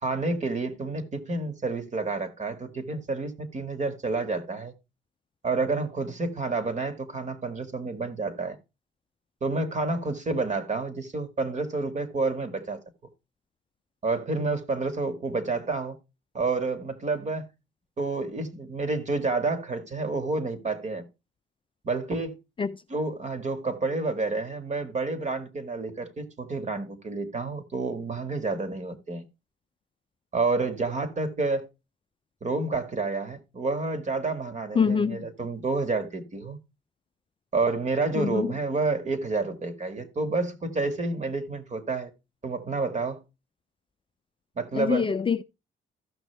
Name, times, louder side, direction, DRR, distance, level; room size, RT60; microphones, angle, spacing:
voice 1, 0.0-4.7 5.4-8.6 9.4-12.8 14.0-16.0 16.3-17.5 18.0-21.1 21.8-22.4 22.9-29.2 30.3-31.7 32.4-36.6 37.5-42.1 42.4-43.2 44.6-45.1, right 3 dB, 35° right, 1.8 m, -29 dB
voice 2, 34.8-35.3 38.2-38.5 44.7-45.4, left 6 dB, 25° left, 0.4 m, -25 dB
14.5 x 6.1 x 3.4 m
cardioid pair, 90°, 20 cm